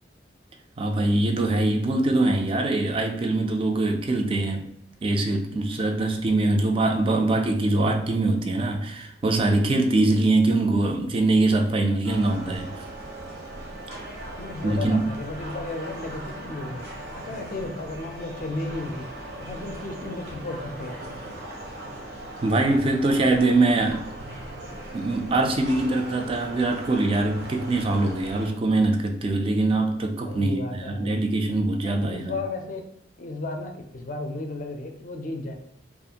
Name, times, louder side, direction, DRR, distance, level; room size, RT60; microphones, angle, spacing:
voice 1, 0.8-4.7 5.0-12.8 14.6-15.0 22.4-24.1 24.9-32.3, right 2 dB, 30° right, 0.3 m, -23 dB
sound 1, 12.0-28.5, right 1 dB, 65° right, 0.7 m, -39 dB
voice 2, 14.4-19.1 19.4-20.9 30.2-31.2 31.8-32.8 33.2-35.5, left 2 dB, 45° left, 0.4 m, -34 dB
2.4 x 2.4 x 2.8 m
head